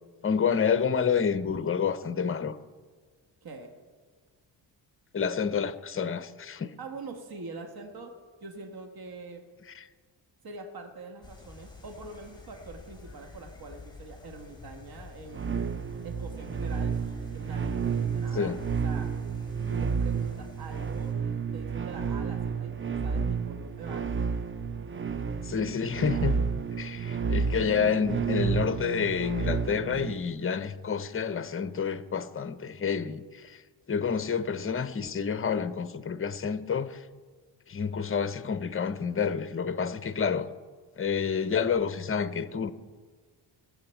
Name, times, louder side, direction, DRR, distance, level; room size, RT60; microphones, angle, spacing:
voice 1, 0.2-2.6 5.1-6.7 9.7-9.8 18.3-18.6 25.4-26.4 26.8-33.6 33.9-37.0 37.7-40.5 41.0-42.7, left 6 dB, 25° left, 0.7 m, -29 dB
voice 2, 3.4-3.7 6.8-8.1 8.4-9.4 10.4-15.4 16.0-17.0 17.3-18.6 18.8-19.4 19.7-24.2, right 3 dB, 50° right, 1.6 m, -44 dB
sound 1, 11.2-21.1, left 3 dB, 10° left, 3.2 m, -49 dB
sound 2, 15.3-30.1, right 6 dB, 25° right, 0.6 m, -31 dB
21.0 x 8.0 x 4.5 m
cardioid pair, 80°, 48 cm